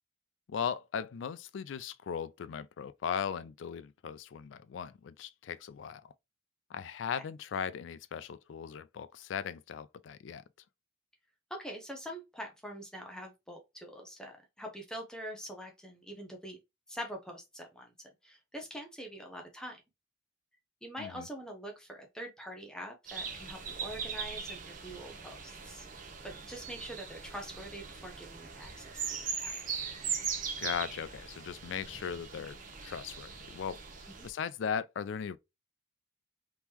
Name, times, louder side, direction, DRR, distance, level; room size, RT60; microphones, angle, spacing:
voice 1, 0.5-6.1 6.7-10.4 21.0-21.3 30.6-33.8 34.2-35.4, left 7 dB, 80° left, 0.4 m, -38 dB
voice 2, 11.5-16.6 16.9-19.8 20.8-25.8 26.2-29.6 34.2-34.3, equal, 5° left, 0.7 m, -44 dB
sound 1, 23.1-34.3, right 6 dB, 45° right, 0.8 m, -40 dB
3.6 x 3.0 x 2.9 m
head